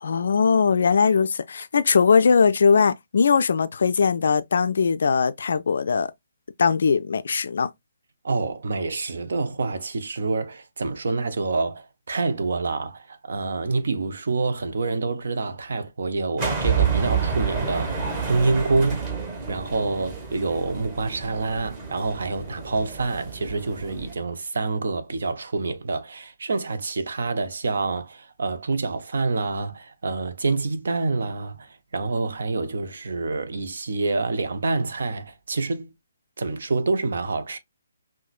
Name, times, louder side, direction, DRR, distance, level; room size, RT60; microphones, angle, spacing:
voice 1, 0.0-6.1 6.6-7.7, left 5 dB, 55° left, 0.4 m, -20 dB
voice 2, 8.2-19.0 19.5-35.9 36.4-37.6, right 3 dB, 55° right, 0.6 m, -27 dB
sound 1, 16.4-24.1, right 6 dB, 25° right, 1.5 m, -29 dB
5.7 x 2.1 x 2.3 m
figure-of-eight pair, 135°, 0 cm